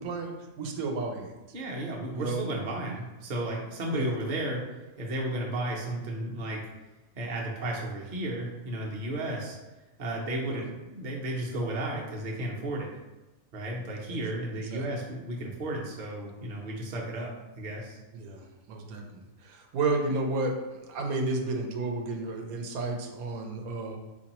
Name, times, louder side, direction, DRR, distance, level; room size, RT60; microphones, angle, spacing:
voice 1, 0.0-1.3 2.1-2.5 3.9-4.1 10.5-10.6 14.1-14.2 14.6-14.8 18.1-24.0, right 3 dB, 85° right, 2 dB, 1.1 m, -32 dB
voice 2, 1.5-4.6 5.0-6.6 7.2-9.6 10.0-12.9 13.5-18.0, right 1 dB, 45° right, -2 dB, 0.7 m, -33 dB
4.0 x 2.6 x 2.9 m, 1.1 s
omnidirectional pair, 1.5 m